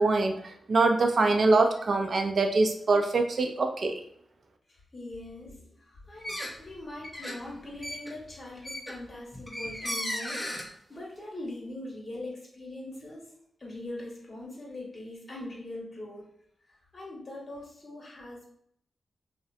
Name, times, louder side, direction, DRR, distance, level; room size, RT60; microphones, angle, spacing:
voice 1, 0.0-4.0, right 3 dB, 60° right, 5 dB, 0.4 m, -24 dB
voice 2, 4.7-13.3 13.6-16.3 16.7-18.5, left 1 dB, 40° left, -3 dB, 1.2 m, -42 dB
sound 1, 6.2-6.7 7.0-10.7, left 1 dB, 5° left, 0.7 m, -36 dB
2.7 x 2.0 x 2.4 m, 0.68 s
cardioid pair, 55°, 0 cm